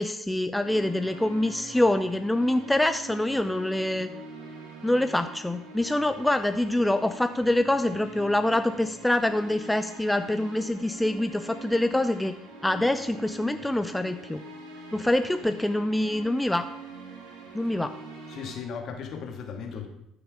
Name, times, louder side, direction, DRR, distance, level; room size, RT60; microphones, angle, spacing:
voice 1, 0.0-4.1 4.8-12.3 12.6-14.4 14.9-16.7 17.5-17.9, left 1 dB, 10° left, 9 dB, 0.6 m, -25 dB
sound 1, 0.6-18.6, right 3 dB, 80° right, 2.4 m, -44 dB
voice 2, 18.3-19.9, left 6 dB, 55° left, 3 dB, 2.2 m, -37 dB
13.0 x 5.9 x 5.0 m, 0.80 s
hypercardioid pair, 55°, 0 cm